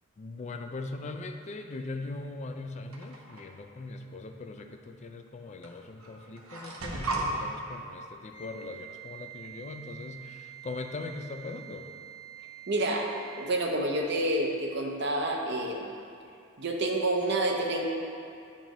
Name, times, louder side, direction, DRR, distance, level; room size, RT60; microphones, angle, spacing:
voice 1, 0.2-11.9, left 3 dB, 30° left, 5 dB, 0.3 m, -40 dB
sound 1, 2.9-3.4 4.6-4.7 5.6-5.7 6.0-7.3, right 3 dB, 80° right, 0.9 m, -35 dB
Wind instrument woodwind instrument, 8.3-13.7, right 11 dB, 55° left, 0.8 m, -47 dB
voice 2, 12.7-15.9 16.6-17.9, right 1 dB, 50° right, 1 dB, 0.7 m, -28 dB
10.5 x 4.4 x 3.0 m, 2.5 s
head